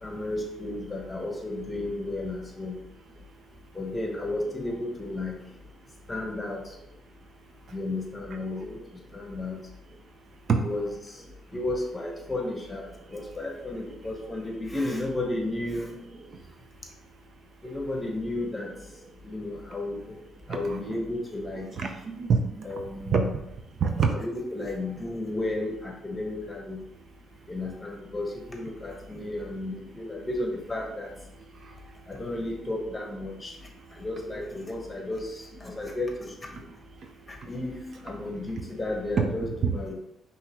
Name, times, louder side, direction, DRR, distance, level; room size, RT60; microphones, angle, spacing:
voice 1, 0.0-2.8 3.7-5.4 6.1-6.7 7.7-8.8 9.1-9.6 10.6-11.2 11.5-15.9 17.6-18.7 19.2-20.1 20.5-21.7 22.6-23.3 24.2-26.8 27.5-31.1 32.1-33.6 33.9-36.3 37.4-39.9, left 2 dB, 20° left, 1 dB, 1.1 m, -33 dB
voice 2, 20.5-20.8 21.8-22.6 23.1-23.2 23.8-24.2 39.2-39.7, right 5 dB, 55° right, 4 dB, 0.6 m, -25 dB
5.6 x 3.0 x 3.0 m, 0.83 s
cardioid pair, 90°, 0 cm